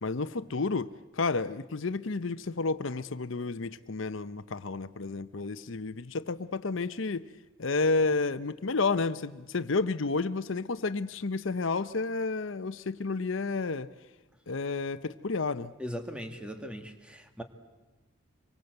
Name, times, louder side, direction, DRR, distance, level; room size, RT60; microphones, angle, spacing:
voice 1, 0.0-7.2 7.6-13.9 14.5-15.7, left 3 dB, 70° left, 0.8 m, -31 dB
voice 2, 15.8-17.4, equal, 5° right, 2.0 m, -39 dB
26.5 x 24.0 x 8.0 m
head